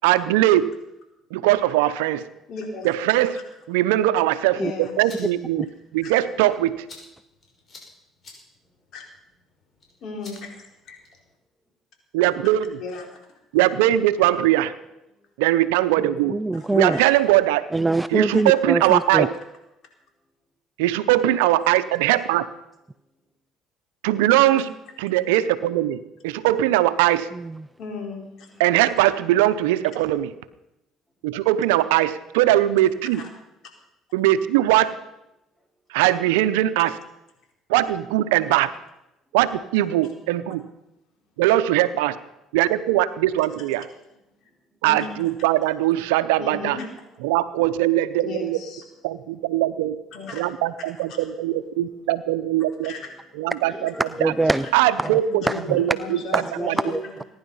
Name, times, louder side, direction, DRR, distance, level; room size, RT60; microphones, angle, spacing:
voice 1, 0.0-0.7 1.3-2.2 2.8-3.4 3.7-5.7 5.9-6.8 12.1-12.8 13.5-14.7 15.4-16.4 16.7-17.7 18.1-19.3 20.8-22.4 24.0-24.7 25.0-27.3 28.6-30.3 31.2-33.2 34.1-34.9 35.9-37.0 37.7-38.7 39.3-40.6 41.4-42.2 42.5-43.9 44.8-46.8 47.2-48.6 49.0-50.0 50.3-52.9 53.4-53.9 54.2-54.3 54.7-55.4 55.7-56.4 56.7-56.8, right 14 dB, 85° right, 0.7 m, -20 dB
voice 2, 2.5-3.0 3.3-3.4 4.5-5.3 6.0-6.1 8.9-9.0 10.0-11.0 12.8-13.0 16.5-17.2 24.5-24.6 27.8-28.5 33.1-33.3 40.0-40.1 44.9-45.1 46.4-46.9 48.2-48.8 50.1-50.4 52.8-53.0 55.4-57.0, left 4 dB, 65° left, 4.3 m, -35 dB
sound 1, 4.8-11.3, left 3 dB, 45° left, 6.1 m, -51 dB
voice 3, 16.3-17.0 17.7-19.3 27.3-27.7 54.2-54.7 55.0-55.2 55.5-55.8 56.3-57.2, right 2 dB, 10° right, 0.5 m, -24 dB
voice 4, 22.9-23.2 27.7-27.8 28.5-28.7 35.3-35.8 44.3-44.9 49.1-49.6 51.4-55.3, equal, 15° left, 6.9 m, -48 dB
21.0 x 10.5 x 5.6 m
supercardioid pair, 70°, 0 cm